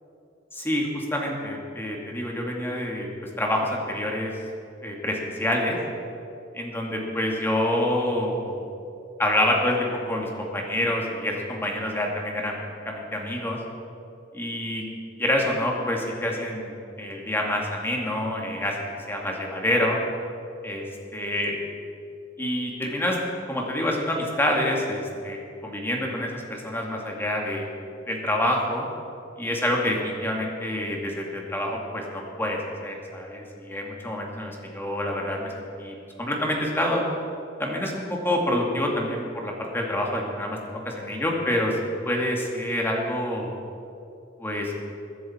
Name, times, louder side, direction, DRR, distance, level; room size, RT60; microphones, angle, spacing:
voice 1, 0.5-3.1 3.4-4.3 4.8-5.8 6.5-8.7 9.2-12.6 12.9-13.6 14.3-14.8 15.2-16.7 17.0-18.8 19.1-20.0 20.6-20.8 21.1-21.5 22.4-23.2 23.5-27.7 28.1-28.9 29.4-37.0 37.6-40.6 40.9-41.8 42.1-43.5 44.4-44.7, left 1 dB, 10° left, -1 dB, 2.1 m, -27 dB
22.5 x 10.5 x 4.4 m, 2.7 s
head